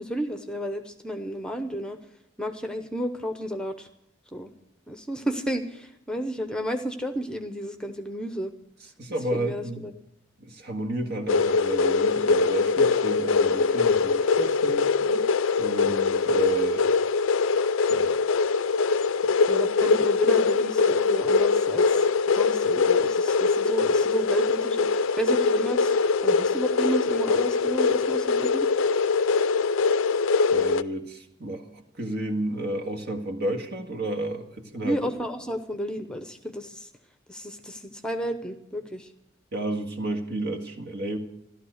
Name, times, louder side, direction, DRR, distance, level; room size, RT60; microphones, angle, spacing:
voice 1, 0.0-2.0 2.4-3.9 4.3-4.5 4.9-8.5 9.3-9.9 15.0-15.2 19.5-26.0 26.2-28.7 34.8-36.9 37.3-39.1, equal, 5° left, 7 dB, 0.8 m, -32 dB
voice 2, 9.0-9.9 10.4-14.8 15.6-16.9 17.9-18.1 30.5-35.0 39.5-41.2, right 1 dB, 55° right, 4 dB, 1.8 m, -31 dB
sound 1, 11.3-30.8, left 4 dB, 85° left, 0.5 m, -23 dB
14.5 x 12.5 x 6.5 m, 0.78 s
head